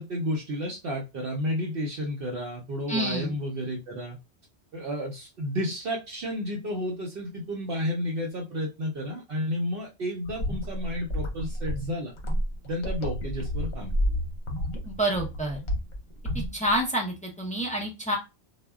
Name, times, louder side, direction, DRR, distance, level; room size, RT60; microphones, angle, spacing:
voice 1, 0.0-4.2 4.7-12.1 12.6-13.9, equal, 60° right, -1 dB, 0.7 m, -31 dB
voice 2, 2.9-3.3 14.8-15.6 16.5-18.2, right 1 dB, 10° left, -1 dB, 0.4 m, -28 dB
sound 1, 10.3-16.8, equal, 50° left, 0.7 m, -30 dB
2.1 x 2.0 x 3.4 m, 0.26 s
omnidirectional pair, 1.1 m